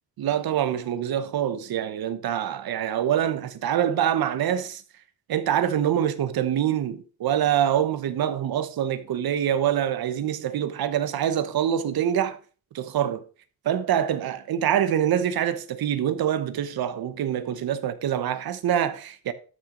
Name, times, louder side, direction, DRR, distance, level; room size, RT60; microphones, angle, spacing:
voice 1, 0.2-4.8 5.3-12.4 12.7-13.2 13.6-19.3, right 10 dB, 70° right, 1.1 m, -25 dB
12.5 x 5.9 x 3.9 m
cardioid pair, 115°, 38 cm